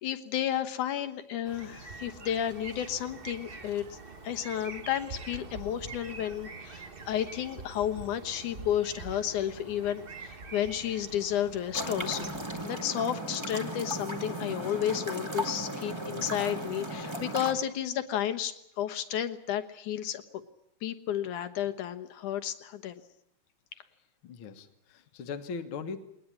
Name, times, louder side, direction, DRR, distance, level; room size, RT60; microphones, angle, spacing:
voice 1, 0.0-4.0 4.2-12.3 12.6-20.2 20.8-23.0, left 10 dB, 75° left, 8 dB, 2.6 m, -32 dB
sound 1, 1.4-12.7, right 4 dB, 65° right, 0.5 m, -45 dB
sound 2, 11.7-17.5, right 1 dB, 10° right, 1.5 m, -36 dB
voice 2, 24.2-26.0, left 5 dB, 50° left, 8 dB, 1.9 m, -39 dB
21.0 x 19.5 x 9.9 m, 0.77 s
omnidirectional pair, 3.6 m